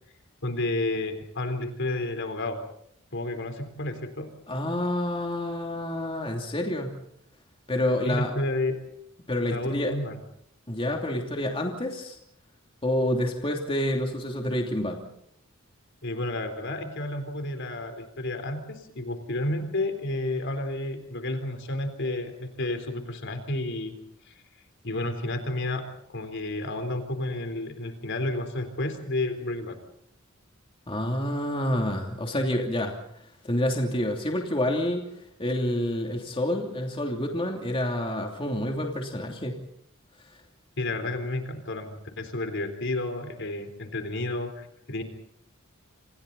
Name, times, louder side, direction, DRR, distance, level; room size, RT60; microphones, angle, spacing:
voice 1, 0.4-2.6 3.1-4.3 8.0-8.8 9.5-10.2 16.0-24.0 24.3-24.4 24.8-29.8 40.8-45.0, left 2 dB, 60° left, 7 dB, 3.9 m, -31 dB
voice 2, 4.5-7.0 7.7-8.3 9.3-9.9 10.7-12.2 12.8-15.0 30.9-33.0 33.4-35.1 35.4-39.6, left 1 dB, 25° left, 1 dB, 3.0 m, -28 dB
30.0 x 27.0 x 4.1 m, 0.72 s
head